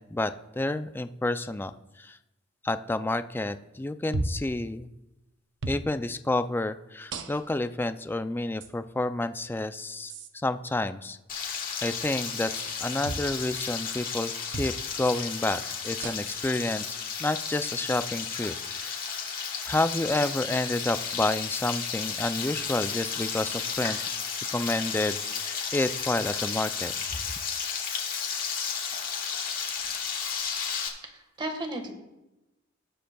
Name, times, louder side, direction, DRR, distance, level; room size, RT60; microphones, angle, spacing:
voice 1, 0.0-1.7 2.0-2.2 2.6-4.9 5.7-11.2 11.8-14.7 15.0-19.0 19.6-24.0 24.5-26.9, left 2 dB, 10° left, 11 dB, 0.3 m, -29 dB
sound 1, 4.1-4.5 5.6-5.9 7.1-7.6 8.6-8.7 10.1-10.3 13.0-13.3 14.5-14.8 16.0-16.4 17.5-17.6 19.0-19.2, right 2 dB, 65° right, 0.7 m, -34 dB
Frying (food), 11.3-30.9, left 6 dB, 45° left, 1.5 m, -33 dB
voice 2, 31.0-31.9, right 1 dB, 25° right, 4 dB, 1.5 m, -35 dB
19.0 x 7.7 x 2.3 m, 0.99 s
head